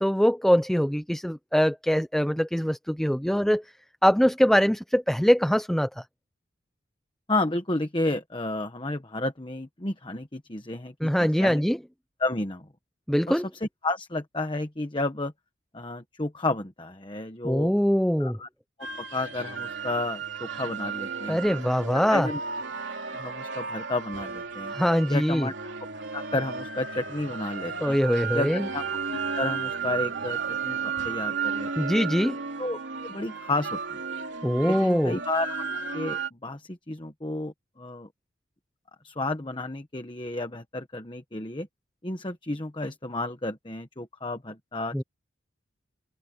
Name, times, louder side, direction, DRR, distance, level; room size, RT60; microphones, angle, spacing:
voice 1, 0.0-3.6 4.0-6.0 11.0-11.8 13.1-13.5 17.4-18.4 21.3-22.3 24.7-25.5 27.8-28.7 31.8-32.4 34.4-35.2 44.9-45.0, equal, ahead, 0.5 m, -23 dB
voice 2, 7.3-11.6 12.2-12.7 13.3-15.3 15.7-17.7 18.2-18.5 19.0-21.5 21.9-22.4 23.1-24.8 25.1-25.5 26.1-28.0 28.3-28.8 29.1-31.9 32.6-34.0 34.6-35.6 35.9-38.1 39.0-41.7 42.0-45.0, left 2 dB, 25° left, 1.2 m, -32 dB
sound 1, 18.8-36.3, right 6 dB, 70° right, 3.1 m, -34 dB
head